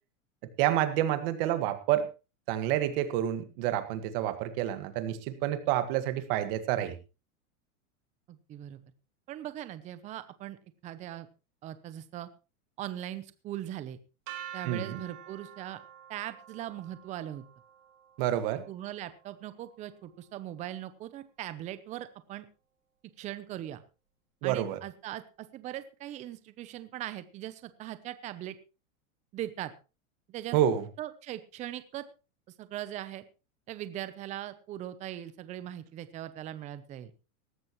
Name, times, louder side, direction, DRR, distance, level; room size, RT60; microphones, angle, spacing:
voice 1, 0.6-2.1 2.5-7.0 14.7-15.0 18.2-18.6 24.4-24.8 30.5-30.8, right 12 dB, 40° right, 10 dB, 1.8 m, -28 dB
voice 2, 8.3-8.8 9.3-11.3 11.6-12.3 12.8-14.0 14.5-15.8 16.1-17.4 18.7-22.5 23.2-23.8 24.4-28.6 29.3-29.7 30.3-30.6 31.0-32.0 32.6-33.2 33.7-37.1, right 12 dB, 15° right, 13 dB, 0.7 m, -40 dB
sound 1, 14.3-20.2, right 11 dB, 60° right, 4.5 m, -48 dB
18.0 x 13.5 x 3.1 m, 0.32 s
supercardioid pair, 160°, 42 cm